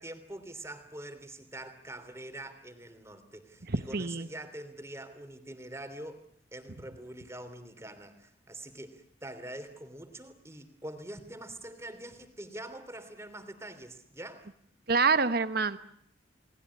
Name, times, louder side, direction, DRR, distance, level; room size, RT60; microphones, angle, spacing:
voice 1, 0.0-6.2 6.5-14.5, right 1 dB, 15° right, 9 dB, 3.1 m, -44 dB
voice 2, 3.7-4.3 14.9-15.8, right 4 dB, 55° right, 12 dB, 1.2 m, -26 dB
29.5 x 19.5 x 9.7 m, 0.67 s
head